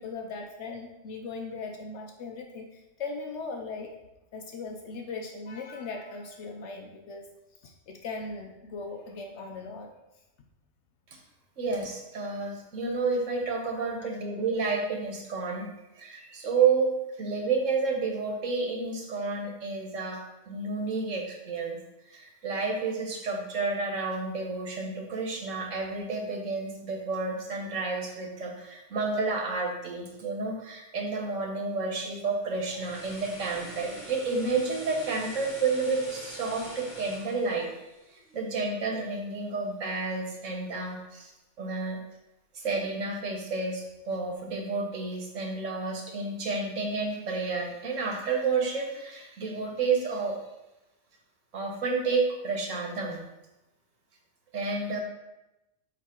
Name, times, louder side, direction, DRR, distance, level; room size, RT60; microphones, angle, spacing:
voice 1, 0.0-3.9 4.3-7.3 7.6-9.9 13.7-14.1, left 4 dB, 70° left, 3 dB, 0.9 m, -39 dB
voice 2, 11.6-15.7 15.9-20.2 20.5-21.8 22.1-37.7 38.1-41.3 41.6-42.0 42.5-50.4 51.5-53.2 54.5-55.0, right 4 dB, 90° right, 1 dB, 1.5 m, -30 dB
sound 1, 32.4-38.6 38.9-39.1, left 1 dB, 40° left, 1.6 m, -45 dB
7.9 x 3.0 x 4.4 m, 0.96 s
omnidirectional pair, 1.3 m